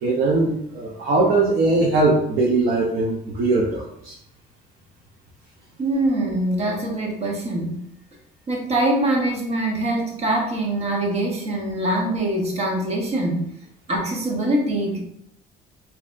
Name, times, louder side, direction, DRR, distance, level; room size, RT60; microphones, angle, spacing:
voice 1, 0.0-4.1, right 2 dB, 60° right, -3 dB, 0.7 m, -20 dB
voice 2, 5.8-7.8 8.5-13.5 13.9-15.0, right 1 dB, 40° right, 0 dB, 1.0 m, -23 dB
4.0 x 2.7 x 2.5 m, 0.73 s
cardioid pair, 110°, 17 cm